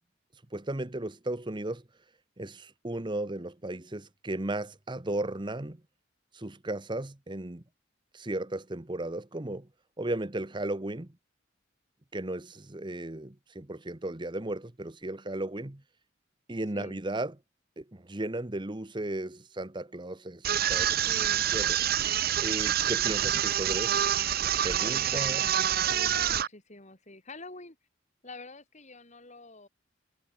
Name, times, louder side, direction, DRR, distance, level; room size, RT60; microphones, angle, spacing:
voice 1, 0.5-1.8 2.4-5.8 6.3-7.6 8.1-9.7 10.0-11.1 12.1-15.8 16.5-17.4 17.8-21.0 21.5-21.8 22.4-24.0 24.6-25.4, right 1 dB, 25° right, 1.1 m, -35 dB
sound 1, 20.4-26.5, right 10 dB, 50° right, 0.8 m, -27 dB
voice 2, 21.1-21.5 24.8-27.8 28.2-29.7, left 2 dB, 35° left, 4.1 m, -46 dB
head